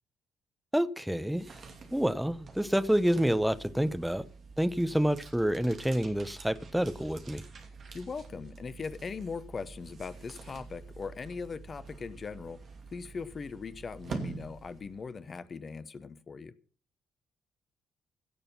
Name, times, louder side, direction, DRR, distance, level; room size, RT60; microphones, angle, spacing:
voice 1, 0.7-1.5 1.9-4.2 4.6-7.4, equal, 5° right, 1.0 m, -28 dB
sound 1, 1.2-15.2, right 4 dB, 50° right, 2.5 m, -47 dB
voice 2, 7.9-12.6 12.9-16.5, left 5 dB, 40° left, 1.0 m, -40 dB
16.5 x 6.8 x 5.7 m
figure-of-eight pair, 45°, 0 cm